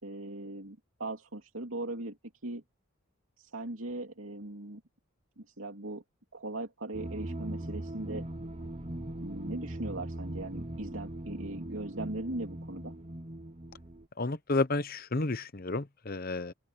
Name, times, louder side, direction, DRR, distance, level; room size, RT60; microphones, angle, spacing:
voice 1, 0.0-2.2 2.4-2.6 3.4-4.8 5.4-6.0 6.3-8.3 9.2-13.0, right 2 dB, 70° right, 2.8 m, -39 dB
sound 1, 6.9-14.1, right 1 dB, 30° right, 1.0 m, -40 dB
voice 2, 14.2-16.5, left 3 dB, 45° left, 0.8 m, -31 dB
open air
head